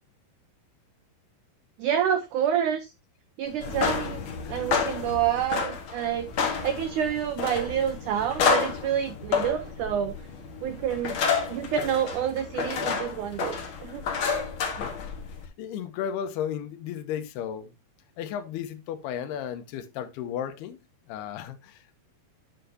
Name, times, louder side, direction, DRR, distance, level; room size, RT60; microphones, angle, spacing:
voice 1, 1.8-2.9 3.4-4.2 4.5-6.3 6.6-10.2 10.6-11.2 11.5-14.0, right 9 dB, 85° right, 1.7 m, -28 dB
sound 1, 3.5-15.4, left 5 dB, 55° left, 1.4 m, -30 dB
voice 2, 14.7-15.1 15.6-17.7 18.2-20.8 21.1-22.0, left 9 dB, 85° left, 2.9 m, -34 dB
9.7 x 7.8 x 2.7 m
omnidirectional pair, 4.6 m